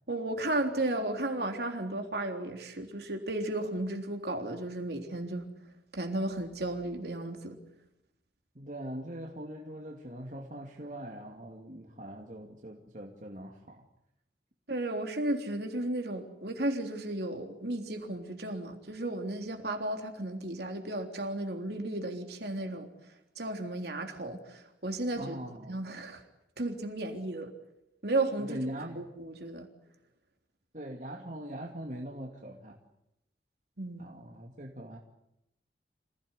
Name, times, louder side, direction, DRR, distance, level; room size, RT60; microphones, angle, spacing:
voice 1, 0.1-5.4 5.9-7.6 14.7-22.9 23.4-25.4 25.7-26.2 26.6-27.5 28.0-28.6 29.0-29.7 33.8-34.2, right 2 dB, 65° right, 4 dB, 3.6 m, -34 dB
voice 2, 8.5-13.8 25.2-25.8 28.4-29.0 30.7-32.8 34.0-35.0, right 1 dB, 45° right, 1 dB, 2.4 m, -41 dB
27.0 x 16.5 x 10.0 m, 0.86 s
head